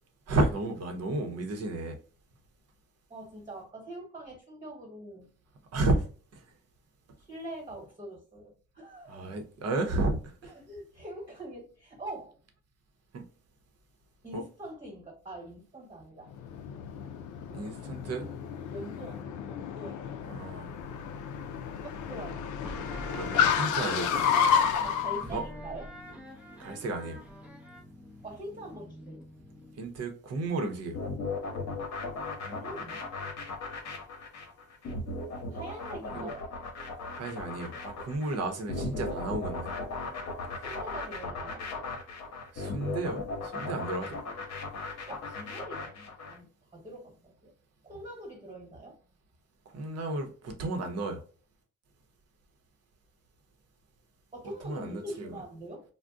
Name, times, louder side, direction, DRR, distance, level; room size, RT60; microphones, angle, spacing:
voice 1, 0.3-2.0 5.7-6.1 6.3-6.4 9.1-10.5 13.1-13.2 14.3-14.4 17.5-18.3 20.3-20.7 23.1-24.1 25.3-25.4 26.6-27.2 29.8-31.0 36.1-36.3 37.1-39.7 42.5-44.2 49.7-51.2 54.6-55.4, right 2 dB, 55° right, 0.8 m, -32 dB
voice 2, 3.1-5.3 7.2-9.2 10.4-12.3 14.2-16.3 17.0-17.1 17.5-18.1 18.7-20.4 21.8-22.7 24.1-26.0 28.2-29.2 29.5-29.6 32.4-33.0 35.5-36.4 40.6-41.6 43.7-43.8 45.1-47.5 47.8-49.0 54.3-55.8, right 1 dB, 20° right, 1.3 m, -44 dB
Car, 16.3-25.2, left 8 dB, 75° left, 0.4 m, -30 dB
sound 1, 22.6-29.9, right 1 dB, 5° right, 0.6 m, -45 dB
sound 2, 30.9-46.4, left 3 dB, 60° left, 0.9 m, -37 dB
2.4 x 2.2 x 3.5 m
cardioid pair, 90°, 30 cm